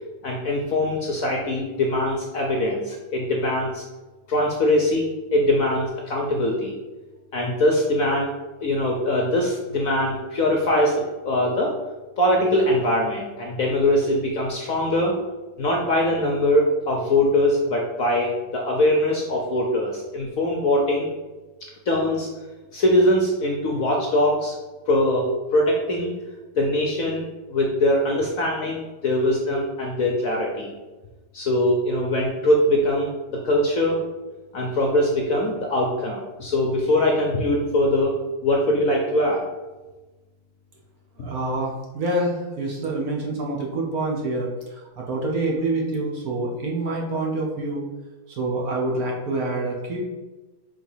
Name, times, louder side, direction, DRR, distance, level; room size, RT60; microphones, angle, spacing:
voice 1, 0.2-3.8 4.3-6.7 7.3-8.3 8.6-11.7 12.2-15.2 15.6-21.1 21.9-22.3 22.7-24.6 24.9-26.1 26.5-30.7 31.3-34.0 34.5-38.2 38.4-39.4, left 1 dB, 60° left, 0 dB, 1.0 m, -22 dB
voice 2, 41.2-47.9 48.3-50.1, right 2 dB, 55° right, -2 dB, 1.3 m, -26 dB
5.0 x 3.7 x 5.5 m, 1.2 s
omnidirectional pair, 2.1 m